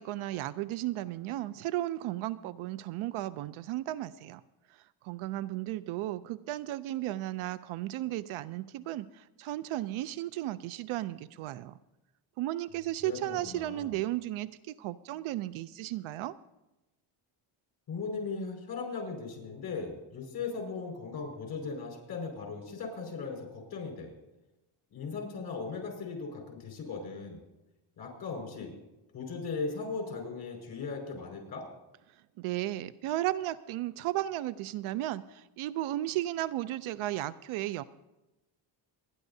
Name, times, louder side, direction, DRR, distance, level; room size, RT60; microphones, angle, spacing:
voice 1, 0.0-4.4 5.0-11.7 12.4-16.4 32.4-37.8, right 15 dB, 75° right, 17 dB, 0.6 m, -34 dB
voice 2, 13.0-13.9 17.9-24.1 24.9-27.4 28.0-28.7 29.1-31.7, left 4 dB, 45° left, 2 dB, 5.0 m, -38 dB
26.5 x 11.0 x 2.7 m, 0.98 s
cardioid pair, 115°, 50 cm